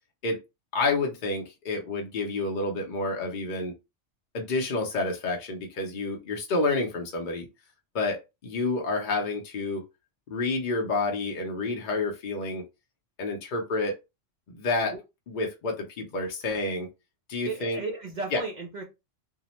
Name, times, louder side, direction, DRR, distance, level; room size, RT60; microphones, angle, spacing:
voice 1, 0.7-3.7 4.3-7.5 7.9-9.8 10.3-12.6 13.2-14.0 14.5-15.0 15.3-16.9 17.3-17.8 18.3-18.4, left 3 dB, 50° left, 0.6 m, -29 dB
voice 2, 17.4-18.8, right 3 dB, 60° right, 0.4 m, -34 dB
2.7 x 2.0 x 2.9 m
omnidirectional pair, 1.3 m